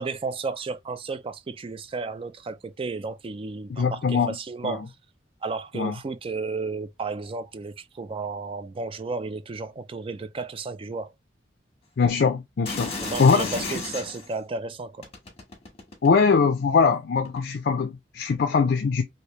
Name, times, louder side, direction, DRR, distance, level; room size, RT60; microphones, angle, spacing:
voice 1, 0.0-4.9 5.4-11.1 13.0-15.1, right 3 dB, 30° right, 0.3 m, -33 dB
voice 2, 3.7-4.4 4.6-4.8 5.7-5.9 12.0-12.9 13.2-13.7 16.0-19.0, left 5 dB, 55° left, 0.4 m, -22 dB
sound 1, 12.6-14.3 15.0-16.4 17.2-17.4, left 3 dB, 35° left, 1.1 m, -33 dB
3.2 x 2.7 x 2.9 m
head